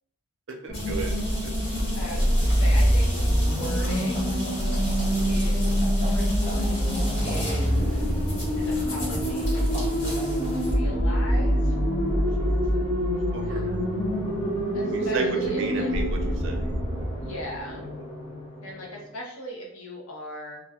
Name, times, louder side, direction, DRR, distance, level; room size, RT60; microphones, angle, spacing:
voice 1, 0.6-1.2 1.4-1.5 12.4-12.6 13.3-13.8 14.9-16.6, right 3 dB, 55° right, 2 dB, 0.5 m, -33 dB
sound 1, 0.7-10.7, equal, 45° left, 1.4 m, -36 dB
sound 2, 0.7-18.9, equal, 25° left, 0.6 m, -25 dB
voice 2, 1.9-4.3 5.3-6.9 7.2-8.0 8.6-9.7 10.0-11.8 12.6-12.7 13.4-13.7 14.7-15.9 17.2-17.9 18.6-20.6, equal, 70° left, -1 dB, 0.7 m, -39 dB
2.4 x 2.1 x 3.4 m, 0.81 s
head